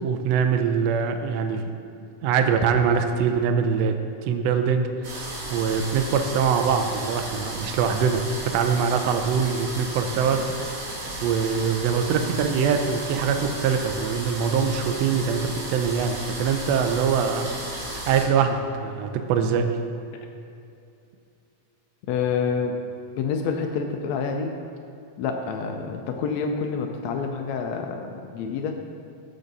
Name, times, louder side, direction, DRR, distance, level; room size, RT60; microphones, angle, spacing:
voice 1, 0.0-1.7 2.2-10.9 11.2-17.5 17.9-19.8, right 6 dB, 80° right, 6 dB, 1.5 m, -23 dB
sound 1, 5.0-18.2, right 1 dB, 45° right, 2.5 m, -34 dB
voice 2, 22.1-22.8 23.2-24.5 25.2-28.7, left 5 dB, 75° left, 4 dB, 1.7 m, -27 dB
14.0 x 5.3 x 4.0 m, 2.6 s
omnidirectional pair, 3.5 m